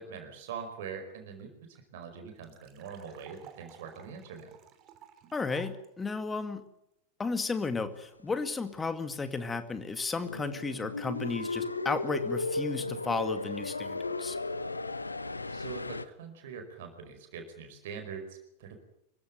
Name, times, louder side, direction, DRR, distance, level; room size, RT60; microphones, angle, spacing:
voice 1, 0.0-4.5 15.5-18.8, right 6 dB, 55° right, 6 dB, 4.9 m, -43 dB
sound 1, 1.1-1.2 1.4-1.5 1.7-5.9, right 10 dB, 35° right, 3.1 m, -54 dB
voice 2, 5.3-6.7 7.2-14.4, left 4 dB, 15° left, 10 dB, 2.2 m, -33 dB
sound 2, 10.2-16.0, left 3 dB, 80° left, 1.1 m, -35 dB
25.5 x 15.5 x 9.4 m, 0.84 s
figure-of-eight pair, 90°, 0 cm